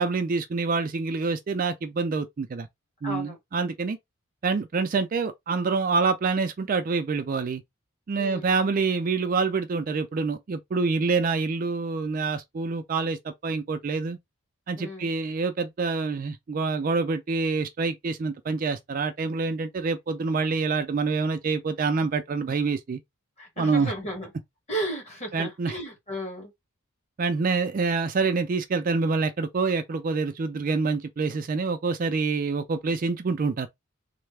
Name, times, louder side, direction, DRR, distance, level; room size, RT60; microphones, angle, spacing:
voice 1, 0.0-2.7 3.0-4.0 4.4-7.6 8.1-14.2 14.7-23.0 23.6-23.9 25.3-25.8 27.2-33.7, right 4 dB, 40° right, 0.3 m, -26 dB
voice 2, 3.0-3.4 8.2-8.5 14.8-15.1 23.4-24.3 24.7-26.5, right 1 dB, 30° left, 1.3 m, -34 dB
3.2 x 2.0 x 3.3 m
head